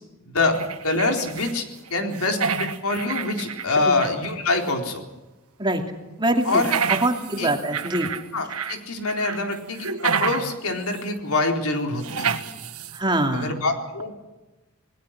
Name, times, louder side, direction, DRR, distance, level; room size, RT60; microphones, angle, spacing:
voice 1, 0.3-0.6 0.8-1.6 1.9-5.0 6.4-6.7 7.4-7.5 8.3-12.4 13.3-14.1, left 2 dB, 85° left, 3 dB, 4.1 m, -25 dB
sound 1, 0.5-1.6 1.9-4.3 4.7-4.8 6.4-8.8 9.1-10.6 10.9-11.0 12.0-13.0, right 6 dB, 85° right, 1.6 m, -29 dB
voice 2, 6.2-6.6 7.0-8.1 12.9-13.6, right 1 dB, 20° right, 3 dB, 2.8 m, -23 dB
28.5 x 20.0 x 6.0 m, 1.1 s
head